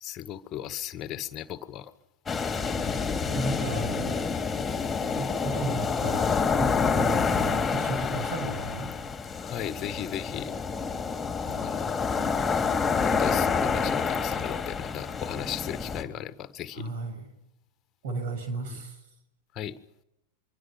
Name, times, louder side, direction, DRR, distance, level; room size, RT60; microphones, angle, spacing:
voice 1, 0.0-1.9 3.2-3.4 9.4-10.5 11.6-12.0 13.0-16.9 18.7-18.8 19.5-19.8, left 11 dB, 30° left, 12 dB, 1.6 m, -36 dB
sound 1, 2.3-16.0, left 5 dB, 15° left, 3.0 m, -28 dB
voice 2, 3.3-4.2 5.2-6.3 6.6-8.9 11.5-11.7 16.8-17.3 18.0-18.9, right 2 dB, 55° right, 8 dB, 6.6 m, -34 dB
25.0 x 24.5 x 5.8 m, 0.85 s
figure-of-eight pair, 90°, 0 cm